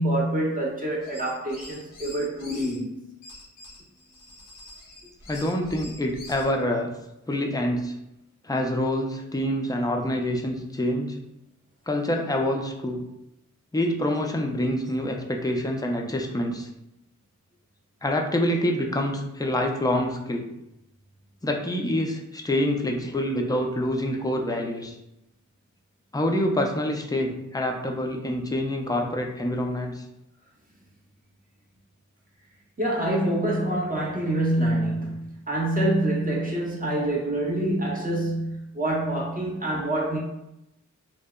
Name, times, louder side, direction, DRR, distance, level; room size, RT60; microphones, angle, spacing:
voice 1, 0.0-3.0 32.8-40.2, right 1 dB, 25° right, -4 dB, 0.7 m, -26 dB
sound 1, 1.0-2.8 3.2-6.5, left 2 dB, 75° left, 0.5 m, -45 dB
voice 2, 5.3-6.9 7.3-7.9 8.4-11.2 11.9-13.0 13.7-16.7 18.0-20.5 21.4-25.0 26.1-30.0, left 1 dB, 10° left, 1 dB, 0.4 m, -26 dB
2.7 x 2.1 x 2.2 m, 0.87 s
cardioid pair, 55°, 32 cm